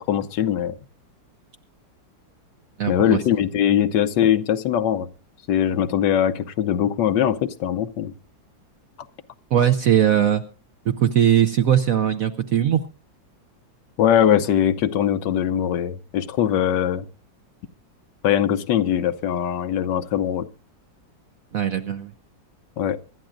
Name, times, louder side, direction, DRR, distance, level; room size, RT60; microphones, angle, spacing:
voice 1, 0.1-0.8 2.9-5.1 5.5-8.1 14.0-17.0 18.2-20.5 22.8-23.0, left 10 dB, 75° left, 1.4 m, -21 dB
voice 2, 2.8-3.2 9.5-10.4 11.0-12.8 21.5-22.1, right 10 dB, 60° right, 1.0 m, -19 dB
24.5 x 12.0 x 2.5 m
omnidirectional pair, 2.0 m